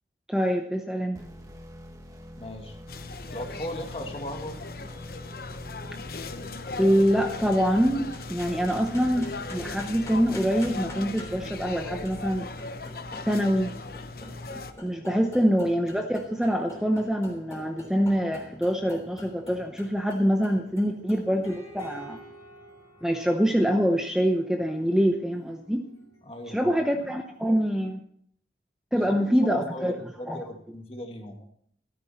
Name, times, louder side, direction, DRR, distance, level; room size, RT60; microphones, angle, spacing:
voice 1, 0.3-1.2 6.8-12.5 13.3-13.7 14.8-22.2 23.0-25.9 26.5-28.0 28.9-29.9 30.3-30.4, equal, 5° right, 4 dB, 0.8 m, -25 dB
sound 1, 1.1-12.9, equal, 20° right, 1.3 m, -46 dB
voice 2, 2.2-2.8 3.3-4.6 15.0-15.2 26.2-26.7 28.9-31.5, left 1 dB, 30° left, 3 dB, 2.0 m, -37 dB
sound 2, 2.9-14.7, left 3 dB, 55° left, 0.9 m, -38 dB
sound 3, 8.1-27.6, equal, 15° left, 3.4 m, -48 dB
14.5 x 13.0 x 4.3 m, 0.66 s
head